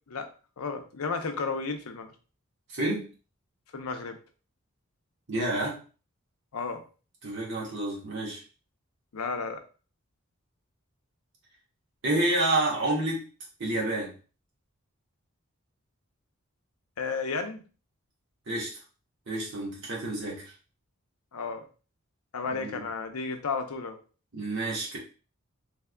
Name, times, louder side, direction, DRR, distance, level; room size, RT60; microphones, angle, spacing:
voice 1, 0.6-2.1 3.7-4.2 6.5-6.9 9.1-9.6 17.0-17.6 21.3-21.7 22.3-24.0, left 4 dB, 85° left, 6 dB, 0.6 m, -33 dB
voice 2, 2.7-3.1 5.3-5.8 7.2-8.4 12.0-13.3 13.6-14.1 18.5-18.7 19.3-20.5 22.5-22.9 24.3-25.0, right 2 dB, 55° right, -3 dB, 1.3 m, -29 dB
3.6 x 3.4 x 2.2 m, 0.36 s
head